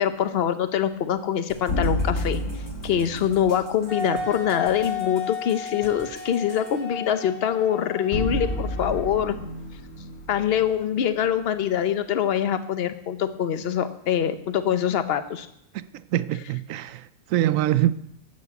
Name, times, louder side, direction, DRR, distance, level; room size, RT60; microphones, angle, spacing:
voice 1, 0.0-2.4 2.8-9.4 10.3-15.5, left 9 dB, 50° left, 0.9 m, -24 dB
sound 1, 1.5-6.7, right 1 dB, 15° left, 2.9 m, -46 dB
sound 2, 1.7-3.9 8.1-11.3, left 1 dB, 70° left, 1.8 m, -30 dB
Wind instrument woodwind instrument, 3.9-9.5, left 4 dB, 30° right, 4.4 m, -34 dB
voice 2, 15.7-17.9, right 13 dB, 75° right, 0.9 m, -24 dB
12.5 x 5.4 x 8.1 m
omnidirectional pair, 1.4 m